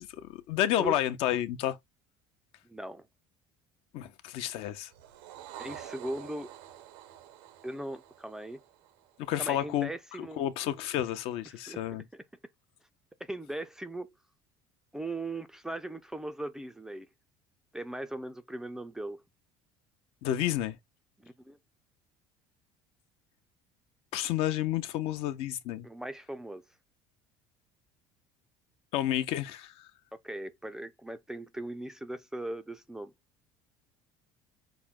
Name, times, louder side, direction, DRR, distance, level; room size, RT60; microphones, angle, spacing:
voice 1, 0.0-1.8 3.9-4.9 9.2-9.9 10.4-12.0 20.2-20.8 24.1-25.9 28.9-29.9, left 12 dB, 60° left, 0.8 m, -30 dB
voice 2, 2.6-3.1 5.6-6.5 7.6-8.6 9.4-10.4 11.7-12.2 13.2-14.1 14.9-17.1 17.7-19.2 21.2-21.6 25.8-26.6 30.1-33.1, right 1 dB, 5° right, 0.4 m, -39 dB
sound 1, 4.9-9.5, right 12 dB, 85° right, 0.9 m, -48 dB
5.9 x 2.2 x 3.6 m
cardioid pair, 150°, 11 cm